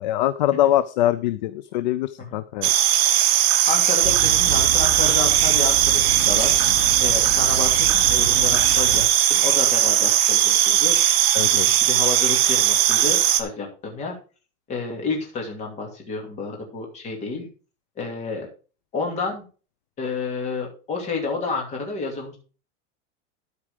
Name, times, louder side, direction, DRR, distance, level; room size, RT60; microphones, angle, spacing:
voice 1, 0.0-2.7 11.3-11.7, left 13 dB, 40° left, 14 dB, 0.4 m, -23 dB
sound 1, 2.6-13.4, right 12 dB, 20° right, 0.4 m, -18 dB
voice 2, 3.7-6.5 7.0-9.0 9.3-14.1 14.7-17.5 18.0-18.5 18.9-19.4 20.0-22.4, left 4 dB, 20° left, 1 dB, 2.6 m, -30 dB
sound 2, 4.0-9.1, right 6 dB, 70° right, 4.2 m, -30 dB
12.5 x 4.7 x 5.0 m, 0.36 s
supercardioid pair, 175°, 35 cm